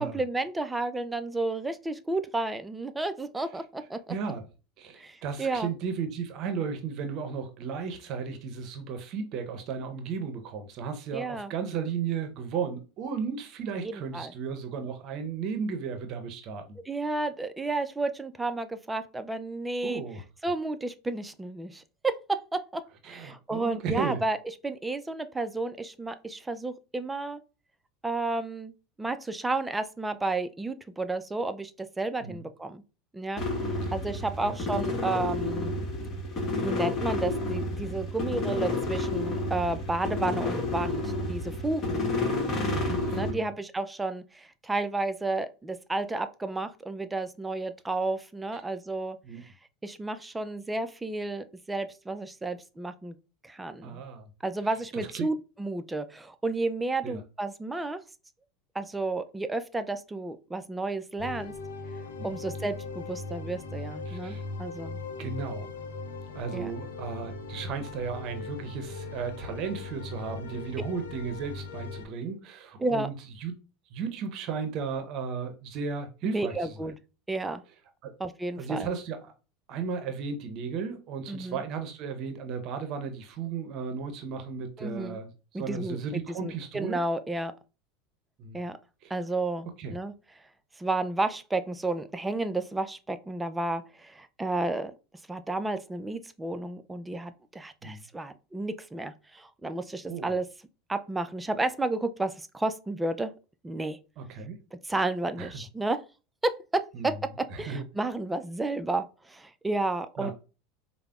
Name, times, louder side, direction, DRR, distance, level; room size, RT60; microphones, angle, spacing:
voice 1, 0.0-4.1 5.0-5.7 11.1-11.5 13.8-14.3 16.9-20.0 20.4-24.4 24.6-27.4 28.0-28.7 29.0-32.8 33.1-35.7 36.6-42.1 43.1-49.5 49.8-53.1 53.4-54.0 54.4-58.0 58.7-61.5 62.2-65.0 66.5-66.7 72.8-73.1 76.2-76.9 77.3-77.6 78.2-78.9 81.3-81.6 84.8-85.2 85.5-87.5 88.5-88.8 89.1-90.1 90.8-94.9 95.3-100.5 100.9-103.3 103.6-104.0 104.8-106.0 106.4-107.1 107.6-110.3, right 2 dB, 10° right, 0.3 m, -32 dB
voice 2, 4.1-4.4 4.8-16.8 19.8-20.2 23.0-24.2 32.2-32.4 33.8-33.9 34.4-34.6 42.7-43.5 49.2-49.4 53.8-54.3 54.9-55.3 57.0-57.2 62.2-62.3 64.1-64.4 65.2-65.7 66.3-73.1 73.4-73.5 73.9-76.7 78.0-78.1 78.6-79.3 79.7-87.0 88.4-88.6 89.0-89.1 89.8-89.9 97.8-98.0 100.1-100.4 104.2-104.6 105.4-105.5 106.9-107.1 107.5-107.8 110.2-110.3, right 6 dB, 50° right, 0.6 m, -35 dB
sound 1, 33.4-43.3, left 2 dB, 40° left, 1.1 m, -30 dB
sound 2, 61.2-72.1, left 3 dB, 85° left, 0.6 m, -39 dB
4.9 x 2.0 x 2.3 m
hypercardioid pair, 90°, 0 cm